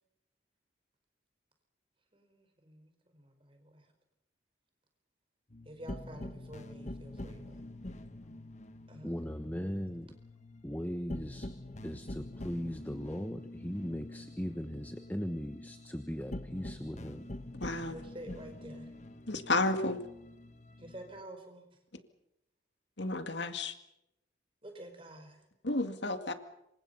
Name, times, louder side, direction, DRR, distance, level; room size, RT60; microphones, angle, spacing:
voice 1, 2.1-3.9 5.6-7.6 8.9-9.8 17.8-18.9 20.8-21.6 24.6-25.4, right 1 dB, 30° right, 5 dB, 5.0 m, -50 dB
sound 1, 5.5-21.2, left 1 dB, 35° left, 1.3 m, -46 dB
voice 2, 9.0-10.1 10.6-11.5 11.8-17.2, equal, 10° left, 7 dB, 1.2 m, -38 dB
voice 3, 17.6-17.9 19.3-20.0 23.0-23.7 25.6-26.3, left 2 dB, 65° left, 8 dB, 2.2 m, -31 dB
28.0 x 25.0 x 5.7 m, 0.85 s
head